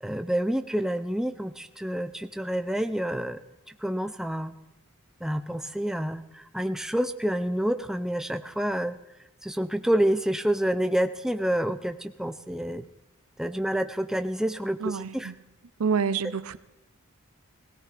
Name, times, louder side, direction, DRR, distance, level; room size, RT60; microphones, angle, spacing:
voice 1, 0.0-3.4 3.8-4.5 5.2-9.0 9.4-12.8 13.4-15.3, right 1 dB, ahead, 9 dB, 0.5 m, -28 dB
voice 2, 14.8-15.3 15.8-16.6, right 6 dB, 85° right, 16 dB, 0.6 m, -27 dB
18.5 x 17.5 x 3.3 m, 1.0 s
head